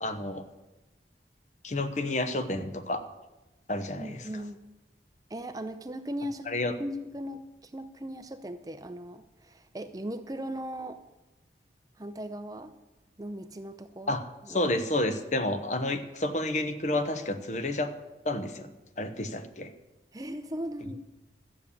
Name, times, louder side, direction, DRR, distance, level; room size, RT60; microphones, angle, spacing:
voice 1, 0.0-0.5 1.6-3.0 3.7-4.3 6.5-6.8 14.1-14.2 14.5-17.9 18.2-18.7 19.0-19.7, left 1 dB, 40° left, 9 dB, 0.9 m, -30 dB
voice 2, 3.9-4.6 5.3-6.5 6.8-11.0 12.0-12.7 13.2-14.2 14.4-14.7 20.1-21.0, equal, 20° right, 9 dB, 0.6 m, -38 dB
12.5 x 7.2 x 8.5 m, 1.0 s
head